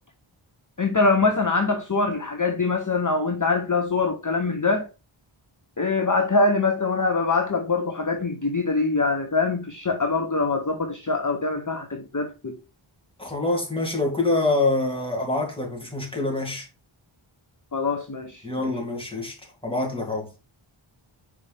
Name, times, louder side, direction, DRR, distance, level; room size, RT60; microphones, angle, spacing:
voice 1, 0.8-4.9 5.8-12.6 17.7-18.7, left 3 dB, 40° left, 1.0 m, -24 dB
voice 2, 13.2-16.7 18.4-19.4 19.6-20.3, left 2 dB, 10° left, 2.6 m, -25 dB
5.9 x 4.8 x 3.4 m
wide cardioid pair, 45°, 50 cm